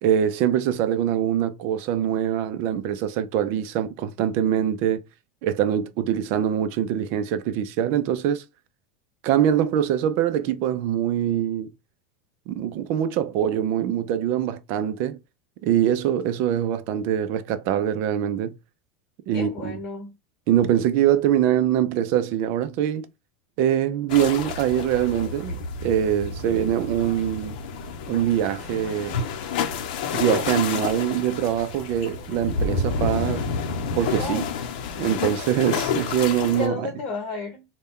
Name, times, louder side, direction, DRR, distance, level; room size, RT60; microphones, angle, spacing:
voice 1, 0.0-5.0 5.4-8.4 9.2-11.7 12.5-15.2 15.6-18.5 19.3-19.7 20.5-23.1 23.6-27.6 28.1-29.2 30.1-33.4 34.0-34.4 35.0-36.9, right 10 dB, 50° right, 0.5 m, -23 dB
voice 2, 19.3-20.2 34.2-34.5 36.5-37.6, left 4 dB, 35° left, 0.9 m, -32 dB
sound 1, 24.1-36.7, left 5 dB, 65° left, 0.7 m, -29 dB
4.1 x 2.2 x 3.5 m
supercardioid pair, 155°, 5 cm